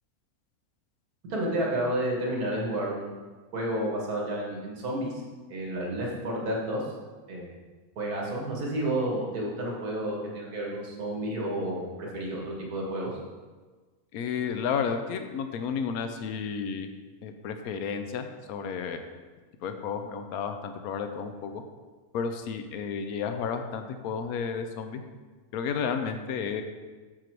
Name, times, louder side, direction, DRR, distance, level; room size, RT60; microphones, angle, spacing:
voice 1, 1.3-3.1 3.5-5.2 5.5-6.9 7.3-7.5 8.0-13.1, right 1 dB, 85° right, -2 dB, 2.0 m, -31 dB
voice 2, 14.1-16.9 17.2-19.1 19.6-21.6 22.1-25.0 25.5-26.6, left 6 dB, 80° left, 7 dB, 1.1 m, -32 dB
6.6 x 5.9 x 4.5 m, 1.3 s
omnidirectional pair, 1.6 m